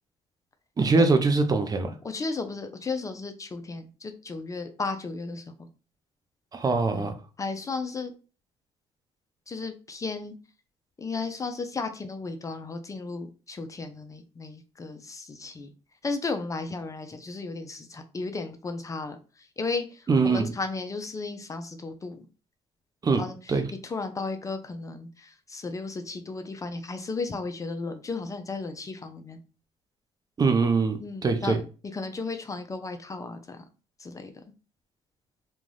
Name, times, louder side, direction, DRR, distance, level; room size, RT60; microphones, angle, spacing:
voice 1, 0.8-1.9 6.5-7.1 20.1-20.5 23.0-23.2 23.5-23.6 30.4-31.6, right 4 dB, 30° right, 7 dB, 0.5 m, -23 dB
voice 2, 2.0-5.7 6.9-7.1 7.4-8.1 9.5-10.3 11.0-15.7 16.0-22.3 23.1-29.4 31.0-31.6 31.9-33.6 34.0-34.3, left 3 dB, 25° left, 7 dB, 0.5 m, -34 dB
2.5 x 2.3 x 3.3 m, 0.34 s
supercardioid pair, 70°, 13 cm